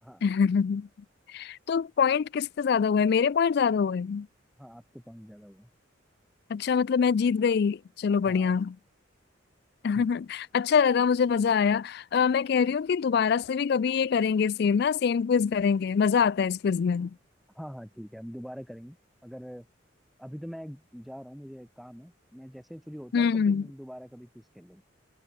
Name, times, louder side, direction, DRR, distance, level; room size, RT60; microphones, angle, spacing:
voice 1, 0.2-0.9 1.3-4.3 6.5-8.8 9.8-17.2 23.1-23.7, left 6 dB, 55° left, 0.3 m, -24 dB
voice 2, 4.6-5.7 8.3-8.5 9.9-10.1 17.6-19.0 19.2-19.7 20.2-24.8, equal, ahead, 1.9 m, -44 dB
head